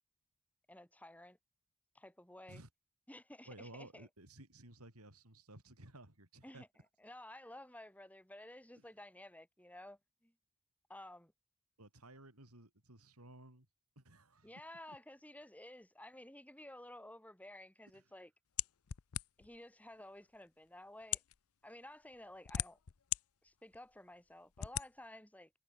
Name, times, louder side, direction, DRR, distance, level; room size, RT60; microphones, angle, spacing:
voice 1, 0.7-1.4 1.9-2.6 3.1-4.1 6.4-6.7 7.0-10.3 10.9-11.3 14.4-18.3 19.4-21.2 21.6-22.8 23.4-25.5, left 1 dB, 5° left, 6.7 m, -53 dB
voice 2, 3.5-6.6 8.8-8.9 11.8-13.7 14.0-14.5 14.9-15.0 17.9-18.0, right 2 dB, 80° right, 6.4 m, -56 dB
sound 1, 18.6-19.6 20.4-20.5 21.0-21.4 22.1-23.2 23.7-23.8 24.6-24.9, left 12 dB, 75° left, 0.6 m, -38 dB
head